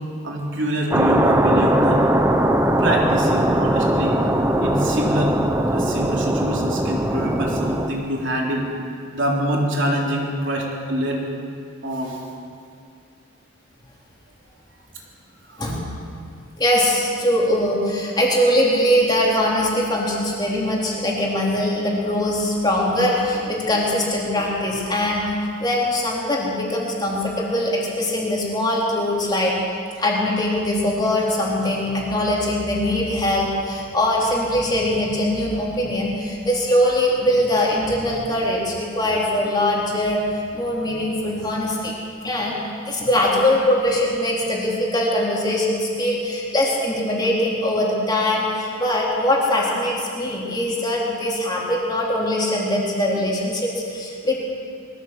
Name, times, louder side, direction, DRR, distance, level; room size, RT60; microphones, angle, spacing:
voice 1, 0.2-2.0 2.8-4.2 4.6-5.4 5.7-8.7 9.1-11.2 11.8-12.2 15.5-15.8, equal, 60° right, -2 dB, 3.6 m, -25 dB
sound 1, 0.9-7.9, right 1 dB, 10° right, 1.0 m, -20 dB
voice 2, 16.6-25.2 25.6-29.5 30.0-40.2 40.5-41.9 42.2-42.6 42.8-54.4, left 1 dB, 20° left, -4 dB, 3.9 m, -22 dB
22.0 x 15.0 x 7.9 m, 2.4 s
head